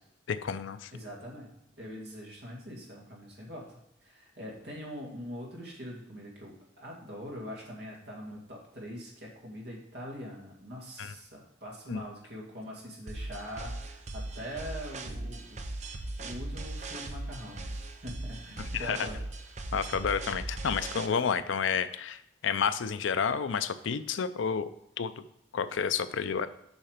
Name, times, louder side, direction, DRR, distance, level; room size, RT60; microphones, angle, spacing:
voice 1, 0.3-0.9 11.0-11.1 11.9-12.0 18.6-19.1 19.7-24.7 25.0-25.1 25.5-26.5, left 6 dB, 80° left, 13 dB, 0.5 m, -30 dB
voice 2, 0.9-1.5 1.8-19.2, equal, 60° right, -2 dB, 2.2 m, -43 dB
sound 1, 13.1-21.1, right 2 dB, 35° right, 0.6 m, -39 dB
7.2 x 5.7 x 5.0 m, 0.85 s
head